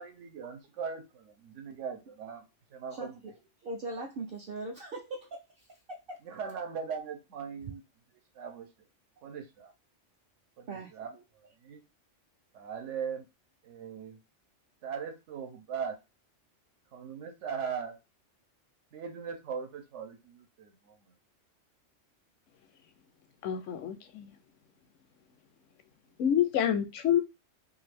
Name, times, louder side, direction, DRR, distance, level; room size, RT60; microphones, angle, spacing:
voice 1, 0.0-2.4 2.7-3.2 6.2-7.8 8.3-8.7 9.2-9.7 10.6-11.1 11.6-11.8 12.5-13.3 13.6-14.2 14.8-16.0 16.9-18.0 18.9-21.1, right 6 dB, 75° right, 1.0 m, -39 dB
voice 2, 2.9-6.2 10.7-11.2, right 2 dB, 60° right, 0.6 m, -41 dB
voice 3, 23.4-24.3 26.2-27.2, left 10 dB, 85° left, 0.9 m, -27 dB
2.6 x 2.4 x 3.3 m
omnidirectional pair, 1.3 m